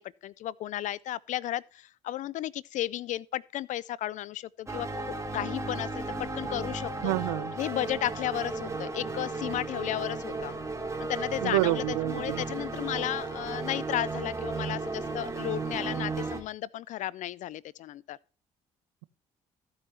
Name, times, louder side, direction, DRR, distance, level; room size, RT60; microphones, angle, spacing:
voice 1, 0.0-4.9 5.3-7.1 7.5-10.5 11.0-18.2, left 13 dB, 65° left, 0.4 m, -34 dB
sound 1, 4.7-16.4, right 3 dB, 20° right, 2.7 m, -35 dB
voice 2, 7.0-7.5 11.4-12.4, right 19 dB, 90° right, 0.6 m, -28 dB
16.0 x 5.6 x 4.3 m
supercardioid pair, 60°, 14 cm